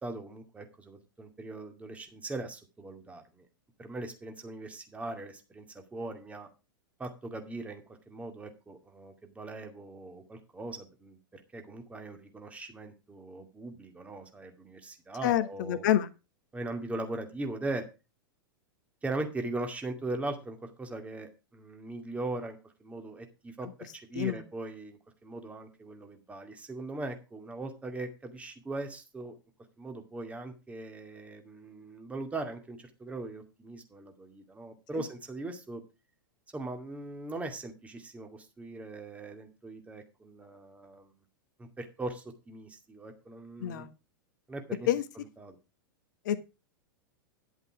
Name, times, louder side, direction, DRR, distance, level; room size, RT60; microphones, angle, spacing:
voice 1, 0.0-3.4 3.8-5.7 5.9-6.5 7.0-7.8 8.1-15.8 16.5-17.9 19.0-29.4 29.8-35.8 36.5-41.1 41.6-43.9 44.5-44.9 45.2-45.6, right 2 dB, 10° right, 5 dB, 2.3 m, -40 dB
voice 2, 15.2-16.1 23.6-23.7 24.1-24.4 34.9-35.0 43.6-43.9 44.9-45.0 46.2-46.4, left 12 dB, 55° left, 12 dB, 1.3 m, -28 dB
11.0 x 8.1 x 4.9 m, 0.29 s
figure-of-eight pair, 95°, 12 cm